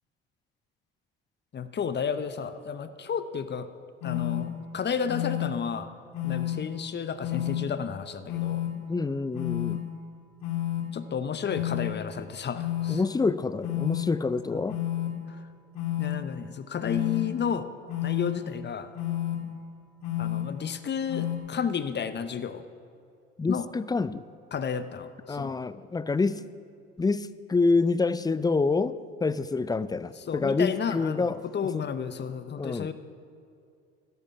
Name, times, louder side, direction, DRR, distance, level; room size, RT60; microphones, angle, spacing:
voice 1, 1.5-3.7 4.0-5.9 6.2-8.7 9.7-9.8 10.9-13.0 14.5-14.6 15.3-15.4 16.0-17.7 18.0-19.0 20.2-22.6 23.5-23.7 24.5-25.6 30.0-32.9, left 7 dB, 35° left, 12 dB, 0.8 m, -32 dB
sound 1, 4.0-4.4 5.1-5.5 6.1-6.5 7.2-7.6 8.3-8.7 9.3-9.7 10.4-10.8 11.5-11.9 12.5-12.9 13.6-14.0 14.7-15.1 15.7-16.1 16.8-17.2 17.9-18.3 18.9-19.4 20.0-20.4 21.1-21.4, left 13 dB, 65° left, 1.9 m, -30 dB
voice 2, 8.9-9.8 12.9-14.8 23.4-24.2 25.3-26.4 27.0-28.9 29.2-31.4 31.7-31.8 32.6-32.9, left 4 dB, 15° left, 16 dB, 0.4 m, -27 dB
12.5 x 11.5 x 5.6 m, 2.4 s
hypercardioid pair, 60°, 31 cm